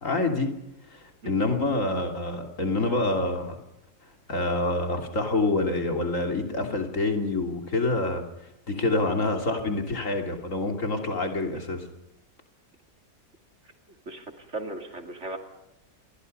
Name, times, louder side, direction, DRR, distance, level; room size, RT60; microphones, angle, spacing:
voice 1, 0.0-0.5 0.9-3.6 4.3-8.2 8.7-11.9, left 2 dB, 60° left, 4 dB, 3.3 m, -27 dB
voice 2, 14.1-15.4, right 2 dB, 50° right, 5 dB, 3.0 m, -37 dB
28.0 x 22.5 x 5.4 m, 0.90 s
omnidirectional pair, 1.6 m